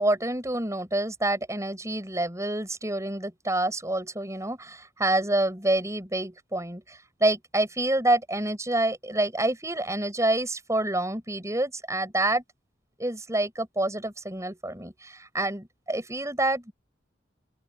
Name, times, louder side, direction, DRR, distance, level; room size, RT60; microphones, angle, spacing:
voice 1, 0.0-12.4 13.0-16.7, right 1 dB, 15° right, 6.5 m, -27 dB
open air
head